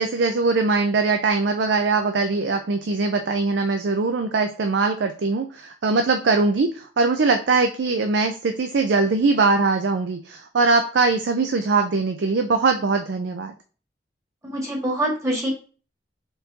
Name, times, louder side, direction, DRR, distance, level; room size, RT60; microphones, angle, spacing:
voice 1, 0.0-13.5, right 3 dB, 80° right, 6 dB, 0.5 m, -21 dB
voice 2, 14.4-15.5, right 1 dB, 15° right, -2 dB, 1.5 m, -25 dB
4.6 x 3.8 x 2.7 m, 0.38 s
head